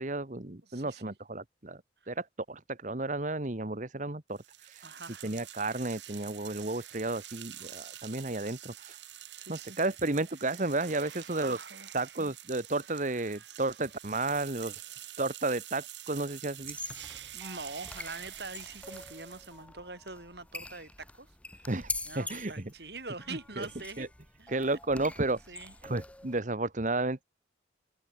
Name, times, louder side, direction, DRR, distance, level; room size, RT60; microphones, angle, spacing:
voice 1, 0.0-4.9 5.2-9.0 9.5-11.6 11.9-14.8 15.2-16.8 21.7-22.7 23.3-23.7 24.0-24.1 24.5-25.4 25.8-27.2, right 2 dB, 45° right, 1.5 m, -33 dB
voice 2, 0.7-1.1 2.0-2.1 4.8-5.3 9.3-9.8 11.3-12.0 17.3-21.7 22.1-24.1 24.4-24.8 25.5-25.7, right 3 dB, 65° right, 7.8 m, -44 dB
sound 1, 4.4-19.6, right 12 dB, 80° right, 5.8 m, -47 dB
sound 2, 16.6-26.4, left 2 dB, 5° left, 1.0 m, -44 dB
head